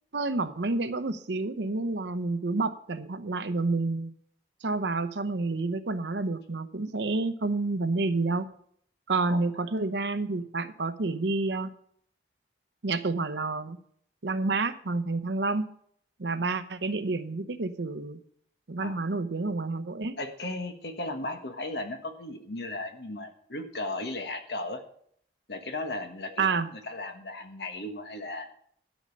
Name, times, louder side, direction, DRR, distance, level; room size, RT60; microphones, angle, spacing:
voice 1, 0.1-4.1 4.6-8.5 9.1-11.7 12.8-13.8 14.2-15.7 16.2-18.2 18.7-20.1 26.4-26.7, right 3 dB, 85° right, 12 dB, 0.8 m, -29 dB
voice 2, 20.2-24.8 25.5-28.5, left 2 dB, 70° left, 6 dB, 1.4 m, -36 dB
12.5 x 5.3 x 6.5 m, 0.63 s
head